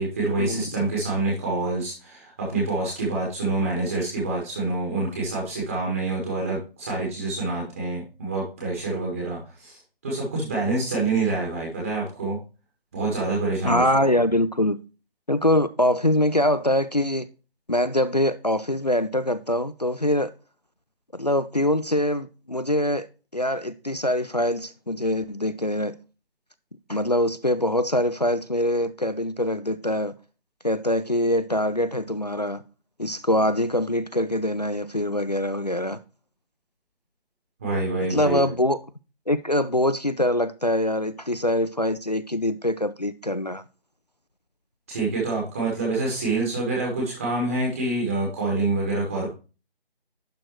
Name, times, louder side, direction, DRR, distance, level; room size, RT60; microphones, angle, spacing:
voice 1, 0.0-12.4 12.9-13.8 37.6-38.4 44.9-49.3, right 3 dB, 15° right, 1.6 m, -26 dB
voice 2, 13.6-14.8 15.3-17.3 17.7-20.3 21.1-23.1 23.3-26.0 26.9-30.1 30.6-32.6 33.0-36.0 38.1-38.8 39.3-43.6, left 1 dB, 45° left, 0.4 m, -23 dB
11.0 x 4.3 x 4.6 m
figure-of-eight pair, 160°, 31 cm